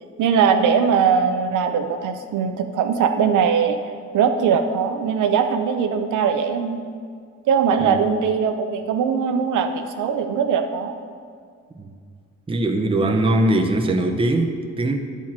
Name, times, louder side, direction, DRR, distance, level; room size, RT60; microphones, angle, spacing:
voice 1, 0.2-3.8 4.1-6.8 7.5-10.9 13.0-13.2, right 6 dB, 80° right, 7 dB, 0.9 m, -20 dB
voice 2, 12.5-15.0, right 1 dB, 20° right, 3 dB, 0.9 m, -21 dB
10.0 x 4.7 x 7.4 m, 2.1 s
cardioid pair, 90°, 30 cm